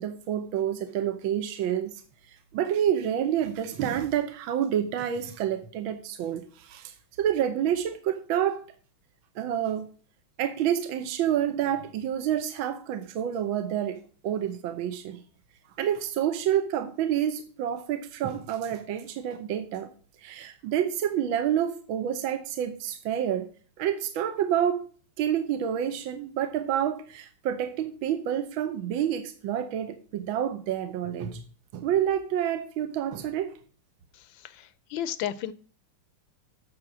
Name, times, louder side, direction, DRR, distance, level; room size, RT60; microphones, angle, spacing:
voice 1, 0.0-2.0 2.3-8.6 9.3-9.9 10.4-14.0 14.2-15.2 15.8-19.9 20.2-23.5 23.8-24.8 25.2-31.4 31.7-33.6, right 10 dB, 75° right, 1.6 m, -28 dB
voice 2, 34.1-35.5, left 10 dB, 75° left, 1.3 m, -34 dB
8.8 x 6.7 x 6.0 m
omnidirectional pair, 2.3 m